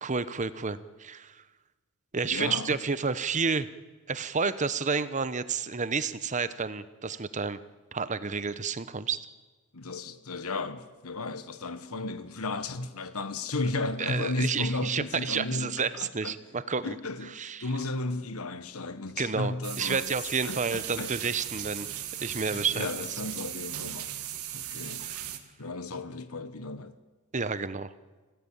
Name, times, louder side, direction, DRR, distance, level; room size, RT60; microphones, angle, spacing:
voice 1, 0.0-1.4 2.1-3.7 4.1-7.6 7.9-9.3 14.0-17.0 17.4-17.7 19.2-21.9 22.2-22.9 25.0-25.3 27.3-27.9, right 5 dB, 35° right, 0.9 m, -30 dB
voice 2, 2.2-2.8 9.7-16.3 16.8-20.1 20.4-21.1 22.4-24.2 24.5-25.0 25.6-26.9, left 2 dB, 80° left, 1.3 m, -34 dB
sound 1, 19.6-25.4, right 11 dB, 90° right, 2.1 m, -37 dB
26.0 x 17.5 x 8.8 m
head